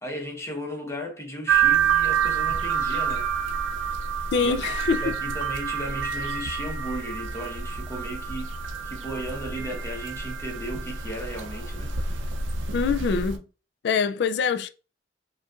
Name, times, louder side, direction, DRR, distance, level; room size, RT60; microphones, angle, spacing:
voice 1, 0.0-3.3 4.1-4.6 5.0-11.9, equal, 15° left, 1.0 m, -35 dB
sound 1, 1.5-13.4, right 7 dB, 75° right, 0.5 m, -28 dB
voice 2, 4.3-5.1 12.7-13.4 13.8-14.7, left 5 dB, 60° left, 0.3 m, -24 dB
5.1 x 2.5 x 2.4 m
head